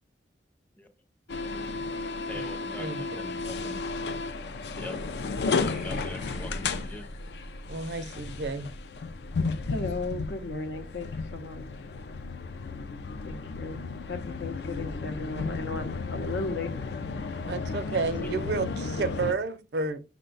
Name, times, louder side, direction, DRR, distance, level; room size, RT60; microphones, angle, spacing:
sound 1, 1.3-19.3, left 4 dB, 65° left, 0.4 m, -33 dB
voice 1, 1.3-1.8 2.3-3.8 4.8-5.0 5.6-7.1 18.2-18.3, left 1 dB, 10° left, 0.5 m, -43 dB
voice 2, 2.8-3.2 7.7-8.7 17.5-20.0, right 4 dB, 65° right, 0.5 m, -31 dB
sound 2, 5.7-8.7, left 2 dB, 40° left, 0.9 m, -52 dB
voice 3, 9.7-11.7 13.2-16.7, left 3 dB, 85° left, 0.8 m, -36 dB
6.0 x 2.2 x 3.8 m
head